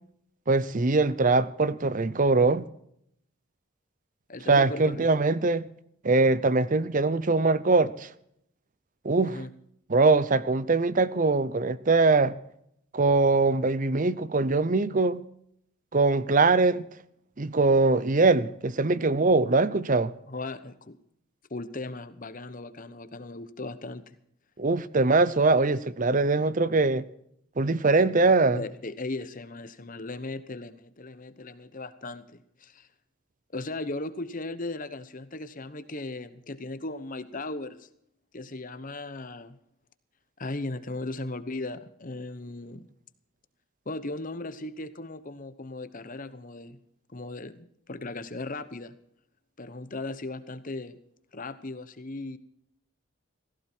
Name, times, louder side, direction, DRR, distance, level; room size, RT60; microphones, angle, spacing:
voice 1, 0.5-2.6 4.5-5.6 6.0-8.1 9.0-9.4 9.9-12.3 12.9-15.2 15.9-16.9 17.4-20.1 24.6-27.1 27.6-28.6, right 3 dB, 40° right, 0.7 m, -22 dB
voice 2, 4.3-5.1 9.2-9.5 20.3-21.0 21.5-24.1 28.5-32.9 33.5-37.9 38.3-39.6 40.4-42.9 43.9-46.8 47.1-48.9 49.6-51.0 51.3-52.4, left 2 dB, 40° left, 1.0 m, -37 dB
17.0 x 15.0 x 4.5 m
head